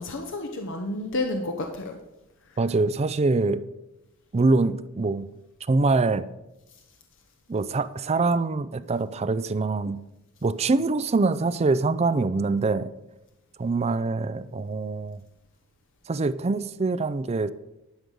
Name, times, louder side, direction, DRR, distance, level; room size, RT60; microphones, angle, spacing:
voice 1, 0.0-2.0 2.4-2.6 6.7-6.8, left 2 dB, 65° left, 4 dB, 0.9 m, -31 dB
voice 2, 2.6-3.6 4.3-5.3 5.7-6.3 7.5-10.0 10.4-12.9 13.6-15.2 16.1-17.5, right 3 dB, 30° right, 15 dB, 0.4 m, -24 dB
11.5 x 5.3 x 6.3 m, 0.94 s
head